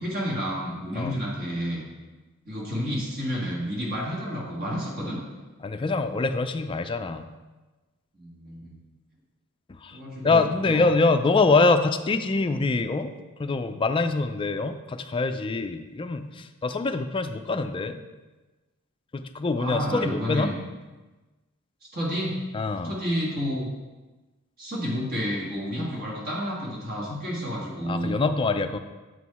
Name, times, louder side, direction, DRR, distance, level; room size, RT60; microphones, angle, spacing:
voice 1, 0.0-1.8 2.4-5.2 8.1-8.8 9.9-10.8 19.6-20.5 21.9-22.4 22.8-23.7 24.6-28.2, equal, 45° right, -4 dB, 1.7 m, -30 dB
voice 2, 5.6-7.3 9.7-10.0 10.2-18.0 19.1-20.5 22.5-22.9 27.9-28.8, left 3 dB, 25° left, 8 dB, 0.3 m, -25 dB
7.9 x 4.6 x 4.2 m, 1.2 s
head